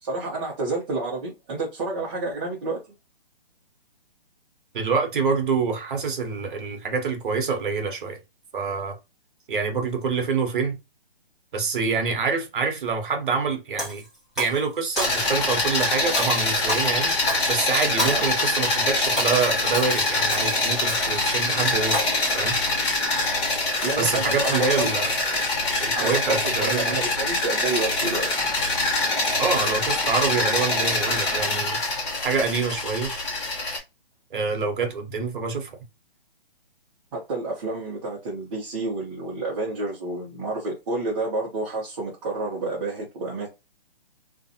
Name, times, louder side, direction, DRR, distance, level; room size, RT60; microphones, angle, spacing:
voice 1, 0.0-2.8 18.0-18.3 23.8-24.9 26.0-28.3 37.1-43.5, right 2 dB, 30° right, 0.8 m, -29 dB
voice 2, 4.7-8.2 8.5-9.0 9.5-10.8 11.5-14.0 14.4-17.1 17.5-22.0 22.3-22.6 24.0-25.1 25.8-27.0 29.4-31.8 32.2-33.1 34.3-35.7, right 5 dB, 55° right, 1.0 m, -26 dB
Shatter, 13.8-14.6 15.0-15.6 16.1-18.5 18.9-21.5 21.9-22.3, equal, ahead, 0.8 m, -32 dB
sound 1, 15.0-33.8, left 2 dB, 30° left, 1.0 m, -24 dB
2.4 x 2.4 x 2.7 m
hypercardioid pair, 150°, 30 cm